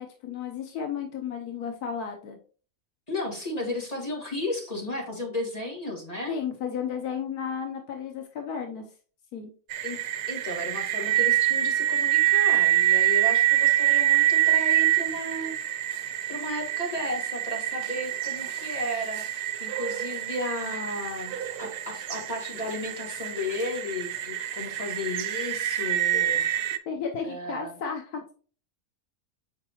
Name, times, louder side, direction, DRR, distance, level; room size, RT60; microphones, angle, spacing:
voice 1, 0.0-2.4 6.3-8.9 9.3-9.5 26.9-28.3, left 7 dB, 85° left, 3 dB, 1.4 m, -33 dB
voice 2, 3.1-6.4 9.8-10.0 10.3-15.5 16.3-26.4 27.2-27.8, left 1 dB, 25° left, -2 dB, 2.2 m, -34 dB
sound 1, 9.7-26.8, right 13 dB, 70° right, 1.0 m, -26 dB
7.3 x 4.7 x 3.0 m, 0.40 s
omnidirectional pair, 1.6 m